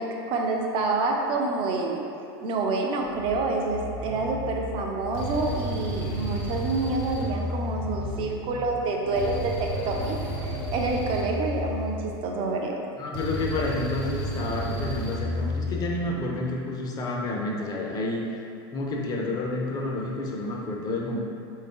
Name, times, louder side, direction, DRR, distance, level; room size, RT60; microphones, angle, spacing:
voice 1, 0.0-2.0 2.4-12.8, right 3 dB, 40° right, 1 dB, 0.5 m, -28 dB
sound 1, 3.0-5.4 5.7-7.0 7.3-7.4 7.6-11.7 12.0-12.3 13.7-13.9 14.7-15.1 16.0-16.4, equal, 85° right, 0.9 m, -38 dB
sound 2, 4.1-4.4 5.1-8.4 9.2-12.4 13.1-16.1, equal, 65° left, 1.0 m, -32 dB
voice 2, 13.0-18.2 18.7-21.2, left 2 dB, 30° left, -1 dB, 0.6 m, -30 dB
3.6 x 2.7 x 3.6 m, 2.6 s
supercardioid pair, 120°, 13 cm